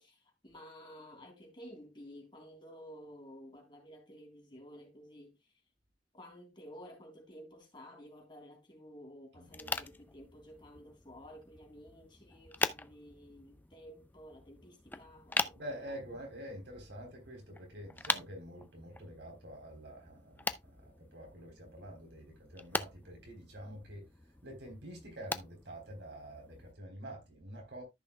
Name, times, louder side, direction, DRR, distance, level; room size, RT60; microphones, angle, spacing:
voice 1, 0.0-5.5 6.1-16.0, equal, 25° left, 3.5 m, -53 dB
voice 2, 9.4-9.8 15.5-27.8, equal, 70° right, 3.9 m, -47 dB
sound 1, 9.5-26.7, left 3 dB, 10° left, 0.4 m, -42 dB
14.0 x 5.9 x 2.3 m
head